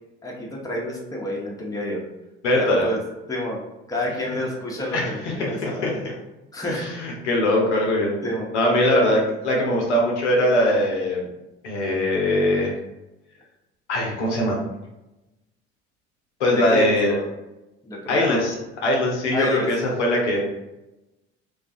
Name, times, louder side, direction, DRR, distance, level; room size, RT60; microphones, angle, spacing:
voice 1, 0.2-2.0 2.5-3.0 3.3-3.6 3.9-6.0 6.5-6.9 8.2-8.5 8.9-9.1 16.5-17.2 17.8-18.4 19.3-19.7, equal, 10° left, -2 dB, 0.7 m, -28 dB
voice 2, 2.4-2.9 4.9-6.1 6.7-8.1 8.5-11.3 11.6-12.8 13.9-14.6 16.4-17.2 18.1-18.6 18.8-20.4, left 1 dB, 85° left, -1 dB, 0.6 m, -21 dB
2.3 x 2.2 x 2.6 m, 0.99 s
hypercardioid pair, 60°, 34 cm